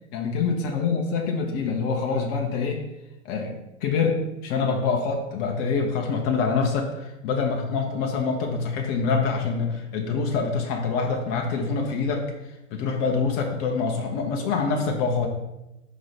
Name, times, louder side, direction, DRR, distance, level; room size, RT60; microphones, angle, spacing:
voice 1, 0.1-2.8 3.2-3.5 3.8-12.3 12.7-15.3, left 5 dB, 40° left, 2 dB, 1.0 m, -25 dB
5.5 x 3.8 x 5.1 m, 0.93 s
figure-of-eight pair, 95°, 36 cm